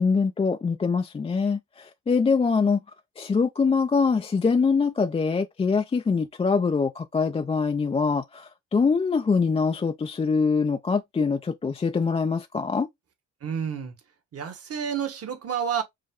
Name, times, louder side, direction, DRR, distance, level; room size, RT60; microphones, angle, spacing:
voice 1, 0.0-2.8 3.2-12.9, left 5 dB, 20° left, 0.4 m, -24 dB
voice 2, 13.4-13.9 14.3-15.8, right 8 dB, 50° right, 1.4 m, -29 dB
5.4 x 2.2 x 3.6 m
cardioid pair, 90°, 30 cm